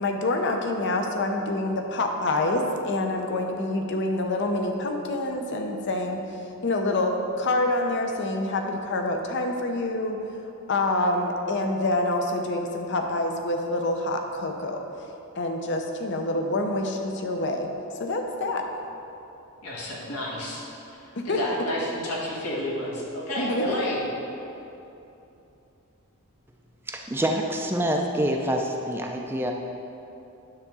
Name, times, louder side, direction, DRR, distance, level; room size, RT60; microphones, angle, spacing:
voice 1, 0.0-10.2 10.7-14.9 15.4-17.7 18.0-18.6 21.2-21.4 23.4-23.7, left 2 dB, 55° left, 3 dB, 0.7 m, -27 dB
voice 2, 19.6-20.6 21.2-24.0, left 1 dB, 80° left, -5 dB, 2.0 m, -30 dB
voice 3, 26.9-29.5, right 1 dB, 10° right, 1 dB, 0.5 m, -26 dB
9.8 x 3.6 x 6.8 m, 2.9 s
head